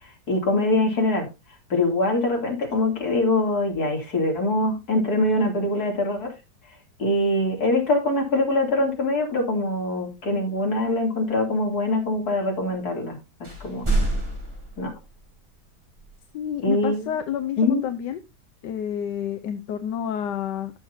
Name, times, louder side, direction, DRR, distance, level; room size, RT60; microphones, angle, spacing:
voice 1, 0.3-1.3 1.7-6.3 7.0-13.2 13.6-13.8 14.8-14.9 16.6-17.1 17.6-17.8, left 2 dB, 60° left, 1 dB, 3.3 m, -23 dB
sound 1, 13.4-15.1 16.0-16.1, right 2 dB, 15° right, 2.6 m, -26 dB
voice 2, 16.3-18.2 18.6-20.8, left 9 dB, 80° left, 9 dB, 1.4 m, -29 dB
14.0 x 6.6 x 2.7 m, 0.24 s
omnidirectional pair, 1.8 m